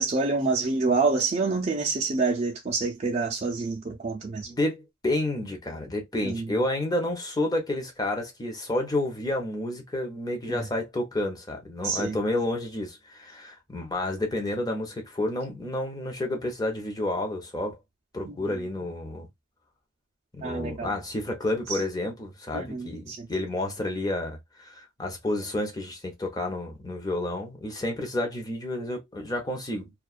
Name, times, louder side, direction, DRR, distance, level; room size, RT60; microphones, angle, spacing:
voice 1, 0.0-4.5 6.2-6.5 10.5-10.6 11.8-12.2 18.2-18.6 20.4-20.9 21.7-21.8 22.5-23.3, right 4 dB, 35° right, 0.5 m, -27 dB
voice 2, 4.5-17.8 18.1-19.3 20.3-29.9, left 1 dB, 20° left, 0.7 m, -30 dB
2.3 x 2.2 x 2.3 m
head